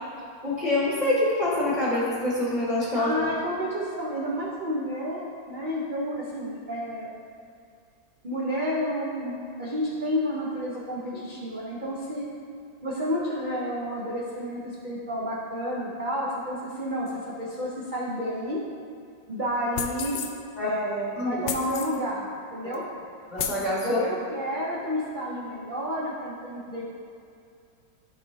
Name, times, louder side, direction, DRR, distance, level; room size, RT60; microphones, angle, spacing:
voice 1, 0.4-3.1 20.6-20.7 21.2-21.5 23.3-24.0, left 1 dB, 25° left, -7 dB, 1.1 m, -25 dB
voice 2, 2.9-7.1 8.2-12.3 12.8-18.7 19.3-20.2 20.6-22.8 23.8-26.8, equal, 50° right, -6 dB, 0.6 m, -30 dB
sound 1, 19.8-20.3 21.5-22.0 22.7-22.8 23.4-23.7, left 8 dB, 80° left, 1.3 m, -32 dB
12.0 x 4.2 x 2.8 m, 2.4 s
omnidirectional pair, 2.2 m